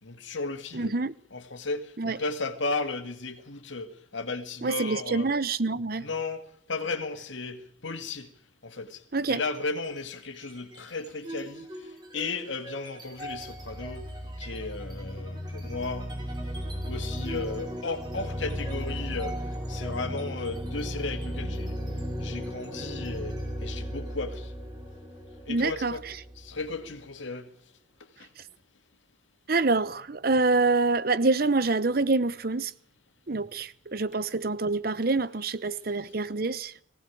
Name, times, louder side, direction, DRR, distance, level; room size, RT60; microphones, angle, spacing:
voice 1, 0.0-0.9 1.3-5.3 6.0-8.3 8.6-11.7 12.1-14.1 14.4-16.1 16.9-19.4 19.7-21.8 22.2-24.5 25.5-26.0 26.4-27.5 28.2-28.3, left 3 dB, 75° left, 2.2 m, -35 dB
voice 2, 0.7-1.1 2.0-2.2 4.6-6.1 9.1-9.4 25.5-26.0 29.5-32.7 33.3-36.7, right 3 dB, 50° right, 0.9 m, -26 dB
sound 1, 9.4-10.0 10.3-26.9, equal, 20° right, 5.6 m, -36 dB
19.5 x 17.5 x 8.6 m
head